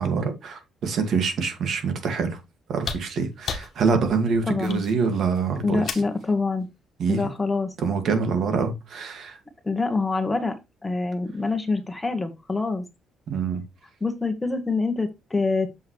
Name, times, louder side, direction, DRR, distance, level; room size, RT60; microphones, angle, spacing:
voice 1, 0.0-2.4 2.7-5.8 7.0-7.2 7.8-9.4 13.3-13.6, right 5 dB, 65° right, 2.0 m, -25 dB
sound 1, 2.8-6.2 7.6-7.7, left 6 dB, 55° left, 1.5 m, -35 dB
voice 2, 4.5-4.8 5.6-6.7 7.1-7.7 9.6-10.6 10.8-12.8 14.0-15.7, left 3 dB, 15° left, 1.7 m, -25 dB
7.1 x 6.4 x 3.2 m
cardioid pair, 90°, 0 cm